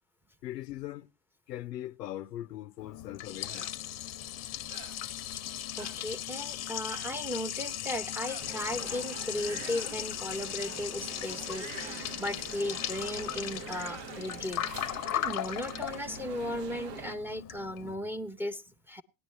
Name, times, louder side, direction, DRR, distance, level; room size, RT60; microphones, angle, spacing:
voice 1, 0.4-1.1 1.5-3.7, left 13 dB, 85° left, 0.6 m, -40 dB
Liquid, 2.8-17.9, left 12 dB, 35° left, 0.7 m, -38 dB
sound 1, 3.4-3.7 4.7-5.0 5.8-6.0 6.8-7.2 8.2-8.5 9.3-10.0 11.4-12.1 13.5-14.2, right 9 dB, 45° right, 0.9 m, -48 dB
voice 2, 5.8-14.6 15.1-19.0, left 1 dB, 5° right, 0.7 m, -36 dB
sound 2, 8.4-17.2, right 6 dB, 80° right, 1.0 m, -45 dB
17.5 x 9.9 x 3.2 m
hypercardioid pair, 80°, 48 cm